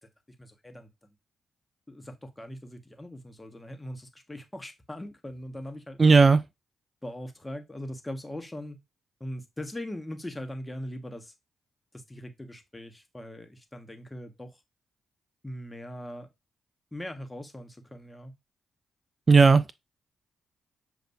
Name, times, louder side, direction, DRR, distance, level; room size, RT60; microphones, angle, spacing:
voice 1, 0.4-0.9 1.9-6.3 7.0-8.8 9.2-11.3 12.1-14.6 15.4-16.3 16.9-18.3, left 1 dB, 15° left, 1.2 m, -40 dB
voice 2, 6.0-6.4 19.3-19.7, right 4 dB, 40° right, 0.3 m, -16 dB
6.7 x 2.6 x 2.6 m
supercardioid pair, 50°, 0 cm